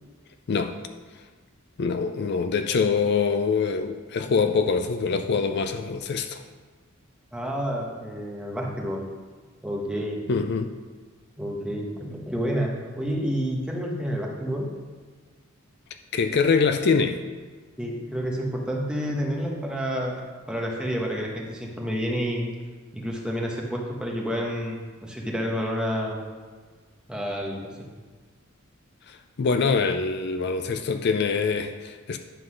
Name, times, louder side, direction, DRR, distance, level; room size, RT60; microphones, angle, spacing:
voice 1, 1.8-6.4 10.3-10.8 16.1-17.2 29.1-32.2, left 5 dB, 50° left, 7 dB, 0.4 m, -24 dB
voice 2, 7.3-9.0 9.6-10.2 11.4-12.7 13.0-14.7 17.8-20.1 20.5-22.4 22.9-26.2 27.1-27.7, equal, 5° right, -1 dB, 1.1 m, -29 dB
10.0 x 3.9 x 6.2 m, 1.4 s
head